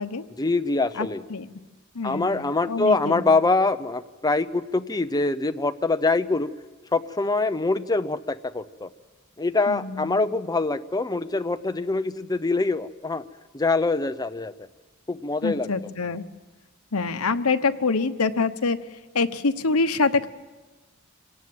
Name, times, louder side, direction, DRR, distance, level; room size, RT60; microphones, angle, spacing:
voice 1, 0.4-1.2 2.0-6.5 6.9-8.9 9.4-13.2 13.5-14.5 15.1-15.7, left 3 dB, 20° left, 10 dB, 0.7 m, -24 dB
voice 2, 0.9-1.5 1.9-3.2 9.7-10.2 15.4-16.3 16.9-18.8 19.1-20.3, left 4 dB, 75° left, 10 dB, 1.0 m, -25 dB
26.0 x 18.0 x 7.9 m, 1.3 s
head